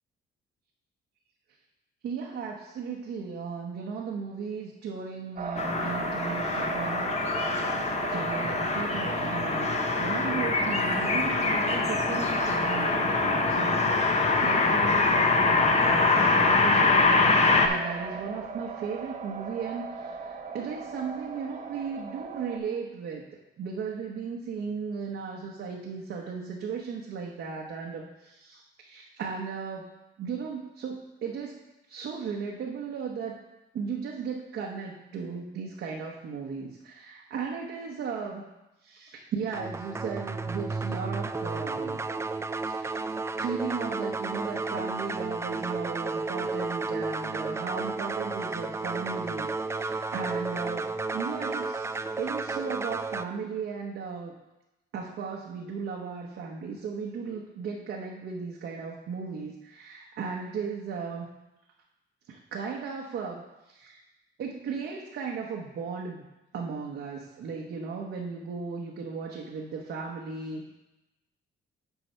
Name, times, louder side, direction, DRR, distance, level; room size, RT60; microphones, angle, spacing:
voice 1, 2.0-7.2 8.1-23.2 23.6-29.9 30.2-31.6 31.9-33.4 33.7-38.5 38.8-42.0 42.6-51.9 52.2-54.3 54.9-61.3 62.3-64.0 64.4-66.2 66.5-70.6, right 5 dB, 70° right, -2 dB, 1.0 m, -36 dB
sound 1, 5.4-22.6, right 4 dB, 40° right, 0.9 m, -36 dB
sound 2, 5.6-17.7, left 3 dB, 35° left, 0.9 m, -24 dB
sound 3, 39.5-53.2, right 3 dB, 15° right, 0.3 m, -32 dB
8.2 x 4.8 x 4.4 m, 0.97 s
cardioid pair, 90°, 20 cm